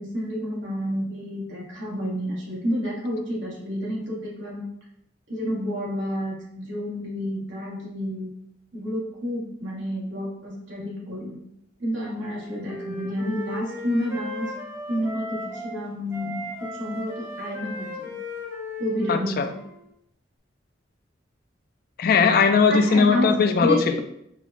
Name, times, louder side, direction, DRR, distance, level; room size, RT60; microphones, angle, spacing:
voice 1, 0.0-4.6 5.3-8.3 8.7-11.4 11.8-14.5 14.9-18.1 18.8-19.6 22.7-23.3 23.6-24.0, equal, 85° right, -5 dB, 1.3 m, -30 dB
Wind instrument woodwind instrument, 12.2-15.8 16.1-19.9, left 1 dB, 15° right, 0.8 m, -36 dB
voice 2, 19.1-19.5 22.0-23.9, left 5 dB, 55° left, 7 dB, 0.3 m, -19 dB
4.6 x 2.1 x 2.6 m, 0.76 s
head